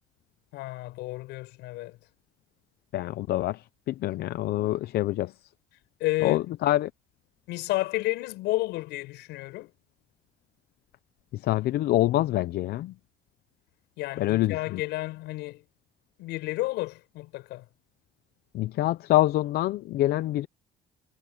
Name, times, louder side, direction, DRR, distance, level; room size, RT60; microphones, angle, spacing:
voice 1, 0.5-2.0 6.0-6.5 7.5-9.7 14.0-15.6 16.2-17.6, left 19 dB, 90° left, 7.1 m, -31 dB
voice 2, 2.9-5.3 6.2-6.9 11.3-12.9 14.2-14.8 18.5-20.5, left 15 dB, 70° left, 0.6 m, -26 dB
cardioid pair, 110°, 17 cm